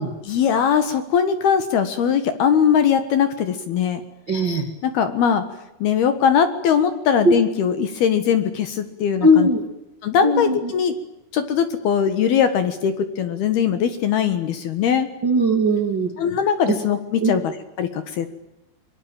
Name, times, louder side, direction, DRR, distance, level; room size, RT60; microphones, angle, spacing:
voice 1, 0.2-4.0 4.8-5.4 5.8-9.5 10.0-10.9 11.3-15.1 16.2-18.3, left 7 dB, 60° left, 10 dB, 3.0 m, -20 dB
voice 2, 4.3-4.6 7.2-7.3 9.2-9.6 10.2-10.6 15.2-16.1 16.7-16.8 17.2-17.3, equal, 35° right, 5 dB, 1.8 m, -18 dB
25.0 x 23.5 x 9.0 m, 0.88 s
omnidirectional pair, 5.9 m